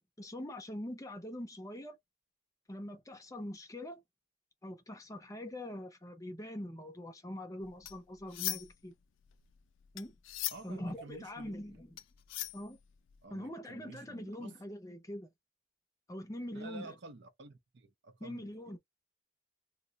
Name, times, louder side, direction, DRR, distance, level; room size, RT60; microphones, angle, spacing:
voice 1, 0.0-2.0 2.7-4.0 4.6-8.9 9.9-10.2 10.6-12.0 12.5-12.8 13.3-15.3 16.1-16.9 18.2-18.8, left 1 dB, 15° left, 0.5 m, -43 dB
sound 1, 7.6-8.9 9.2-13.2, left 14 dB, 70° left, 0.4 m, -40 dB
voice 2, 10.5-11.8 13.2-14.6 16.5-18.7, right 2 dB, 60° right, 0.6 m, -51 dB
2.3 x 2.2 x 3.8 m
head